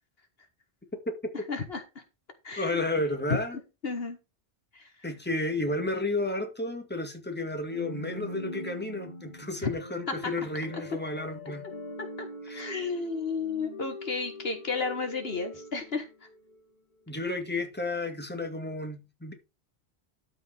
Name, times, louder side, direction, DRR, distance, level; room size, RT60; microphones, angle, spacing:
voice 1, 1.5-2.0 2.4-2.8 3.8-4.2 4.7-4.9 9.6-9.7 10.1-10.3 12.0-12.3 12.5-16.3, left 4 dB, 60° left, 1.8 m, -33 dB
voice 2, 2.6-3.6 5.0-11.6 12.5-12.7 17.1-19.3, left 2 dB, 10° left, 2.1 m, -32 dB
sound 1, 7.7-16.7, left 1 dB, 45° left, 2.7 m, -43 dB
13.0 x 5.4 x 5.0 m
omnidirectional pair, 1.1 m